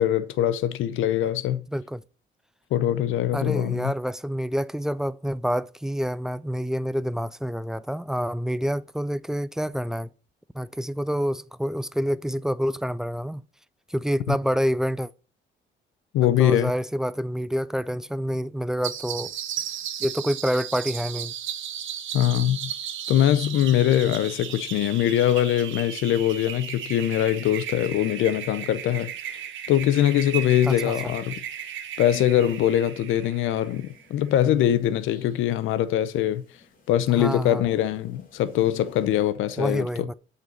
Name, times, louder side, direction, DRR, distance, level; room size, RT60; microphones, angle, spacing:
voice 1, 0.0-1.6 2.7-3.9 14.3-14.4 16.1-16.7 22.1-22.7 23.1-29.4 29.7-31.4 32.0-36.4 36.9-39.9, left 11 dB, 85° left, 0.7 m, -22 dB
voice 2, 1.7-2.0 3.3-10.1 10.5-13.4 13.9-15.1 16.2-19.3 20.0-21.3 30.6-31.1 37.2-37.6 39.6-40.1, equal, 5° right, 0.3 m, -27 dB
sound 1, 18.8-34.1, right 9 dB, 75° right, 1.0 m, -35 dB
sound 2, 33.6-39.3, left 3 dB, 45° left, 2.5 m, -51 dB
7.9 x 4.1 x 4.4 m
cardioid pair, 90°, 20 cm